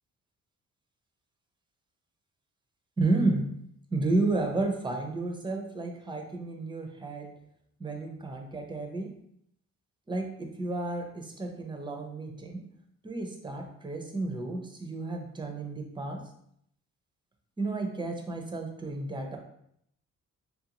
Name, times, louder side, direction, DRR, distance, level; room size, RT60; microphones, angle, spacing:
voice 1, 3.0-3.5 3.9-7.3 7.8-9.1 10.1-12.6 13.0-16.2 17.6-19.4, right 2 dB, 15° right, 2 dB, 0.6 m, -31 dB
3.5 x 2.5 x 2.9 m, 0.71 s
cardioid pair, 90°, 30 cm